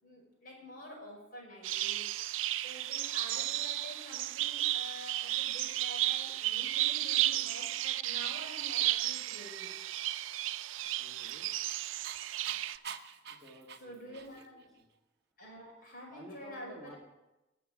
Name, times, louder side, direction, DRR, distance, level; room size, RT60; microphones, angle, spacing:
voice 1, 0.0-9.9 13.8-14.7 15.4-17.0, equal, 45° left, -1 dB, 5.6 m, -48 dB
sound 1, 1.6-12.8, right 14 dB, 80° right, 0.4 m, -33 dB
Dog, 10.8-14.6, right 6 dB, 55° right, 0.8 m, -48 dB
voice 2, 11.0-11.5 13.3-14.2 14.5-14.9 16.1-16.9, left 1 dB, ahead, -5 dB, 2.0 m, -53 dB
19.5 x 6.9 x 6.2 m, 0.98 s
head